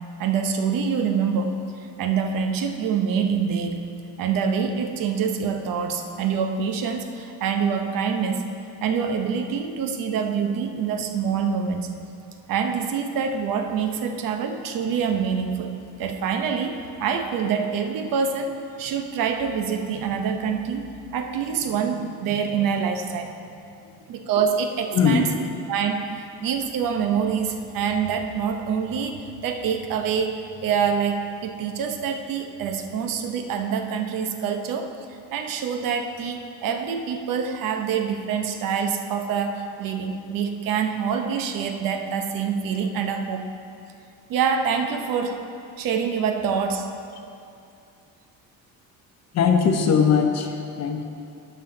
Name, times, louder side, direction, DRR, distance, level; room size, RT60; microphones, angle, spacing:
voice 1, 0.2-1.5 2.0-3.8 4.2-8.4 8.8-11.9 12.5-20.8 21.1-23.3 24.1-25.3 25.7-43.5 44.3-45.4 45.8-46.9, right 6 dB, 65° right, 5 dB, 0.8 m, -26 dB
voice 2, 24.9-25.2 49.3-51.0, left 6 dB, 45° left, 4 dB, 0.9 m, -20 dB
11.5 x 5.6 x 3.8 m, 2.5 s
cardioid pair, 145°, 36 cm